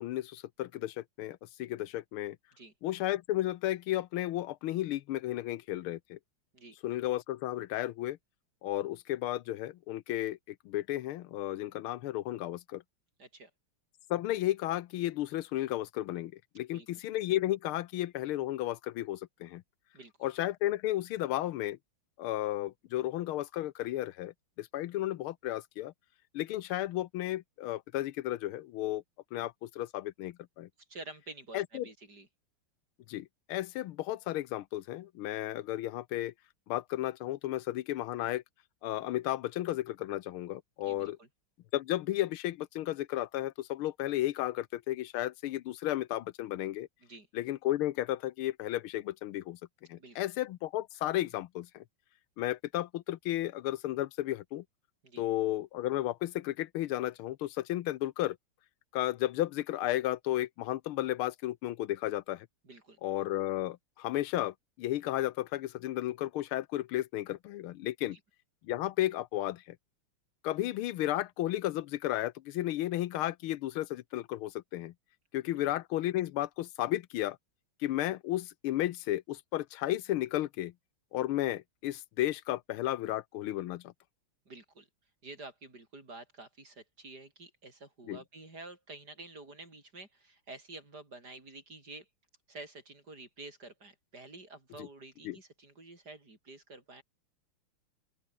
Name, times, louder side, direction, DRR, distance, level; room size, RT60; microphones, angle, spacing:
voice 1, 0.0-2.4 2.8-6.2 6.8-8.2 8.6-12.8 14.1-19.6 20.2-21.8 22.2-25.9 26.3-29.0 29.3-30.7 31.5-31.9 33.1-36.3 36.7-38.4 38.8-41.2 41.7-46.9 47.3-49.6 49.9-51.8 52.4-54.6 55.2-58.4 58.9-62.5 63.0-68.2 68.6-69.8 70.4-74.9 75.3-77.4 77.8-80.7 81.1-83.9 88.1-88.2 94.8-94.9 95.2-95.4, left 14 dB, 80° left, 1.6 m, -33 dB
voice 2, 13.2-13.5 16.7-16.9 19.9-20.1 30.9-32.3 40.8-41.3 47.0-47.3 50.0-50.2 55.0-55.2 62.6-63.0 68.1-68.2 84.5-84.9 85.2-92.1 92.5-97.0, right 2 dB, 45° right, 5.9 m, -49 dB
open air
omnidirectional pair, 2.4 m